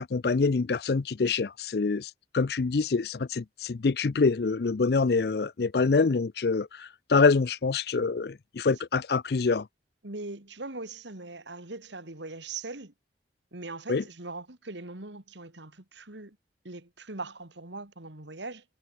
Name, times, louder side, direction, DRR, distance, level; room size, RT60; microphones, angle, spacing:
voice 1, 0.0-9.6 13.9-14.0, left 4 dB, 60° left, 0.5 m, -26 dB
voice 2, 10.0-12.9 13.5-16.4 16.6-18.6, right 3 dB, 80° right, 2.6 m, -40 dB
head